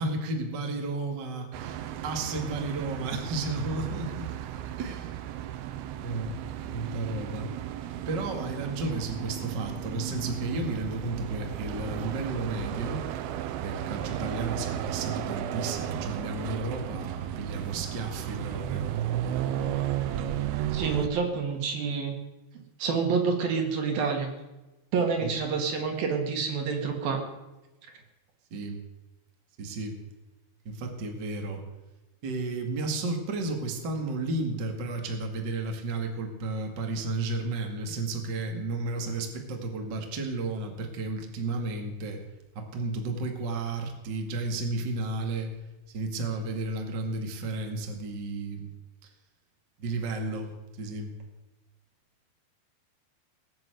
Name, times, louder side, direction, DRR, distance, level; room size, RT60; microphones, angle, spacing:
voice 1, 0.0-4.3 4.8-5.1 6.0-6.4 6.7-7.5 8.1-13.0 13.6-18.9 25.2-25.3 28.5-28.8 29.6-30.0 30.6-31.6 32.2-42.2 42.5-45.5 45.9-48.7 49.0-49.1 49.8-51.1, right 2 dB, 35° right, 3 dB, 1.9 m, -33 dB
sound 1, 1.5-21.1, right 11 dB, 80° right, 2.6 m, -34 dB
voice 2, 20.7-22.2 22.8-24.3 24.9-27.2, right 5 dB, 60° right, 3 dB, 3.6 m, -28 dB
19.0 x 9.5 x 8.0 m, 1.1 s
omnidirectional pair, 4.9 m